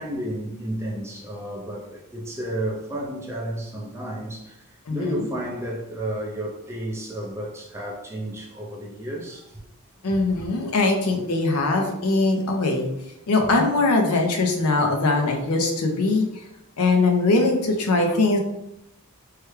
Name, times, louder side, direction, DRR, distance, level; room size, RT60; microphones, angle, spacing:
voice 1, 0.0-4.6 4.9-9.6 10.1-10.4 13.4-13.5, right 1 dB, 10° right, -3 dB, 0.4 m, -32 dB
voice 2, 10.0-12.9 13.3-16.3 16.8-18.4, left 3 dB, 85° left, 3 dB, 0.6 m, -21 dB
3.2 x 2.2 x 3.1 m, 0.84 s
head